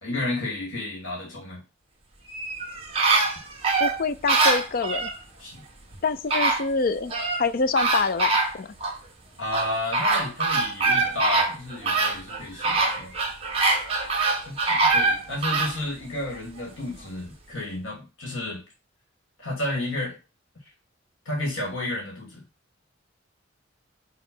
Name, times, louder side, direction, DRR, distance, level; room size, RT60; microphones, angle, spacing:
voice 1, 0.0-1.6 5.4-5.6 9.4-13.1 14.5-18.6 19.4-20.2 21.3-22.4, left 1 dB, 80° left, -2 dB, 2.5 m, -31 dB
sound 1, 2.3-5.2 5.9-6.0 6.3-7.4 7.8-9.0 9.5-15.8 16.2-16.3, right 3 dB, 30° right, 1.4 m, -24 dB
voice 2, 3.8-5.1 6.0-7.1 7.4-8.7, left 4 dB, 45° left, 14 dB, 0.4 m, -25 dB
5.9 x 3.1 x 5.4 m, 0.30 s
head